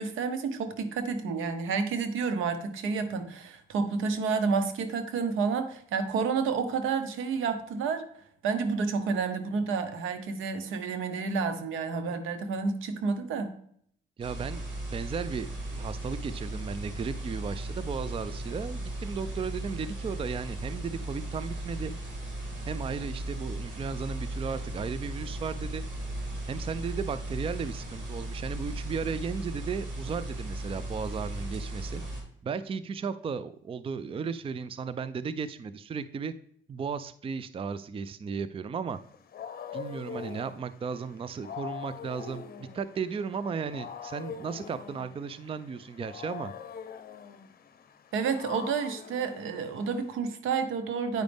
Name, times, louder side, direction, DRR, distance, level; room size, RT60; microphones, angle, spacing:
voice 1, 0.0-8.0 8.4-13.6 48.1-51.2, right 5 dB, 85° right, 9 dB, 1.0 m, -30 dB
voice 2, 14.2-14.6 14.9-21.9 22.7-25.8 26.5-32.0 32.4-36.3 36.7-39.0 39.7-46.5, right 6 dB, 30° right, 14 dB, 0.4 m, -35 dB
sound 1, 14.2-32.2, right 1 dB, 65° right, 3.3 m, -36 dB
Wild animals, 38.9-50.2, left 7 dB, 50° left, 0.8 m, -43 dB
9.2 x 5.2 x 3.4 m, 0.65 s
cardioid pair, 90°, 20 cm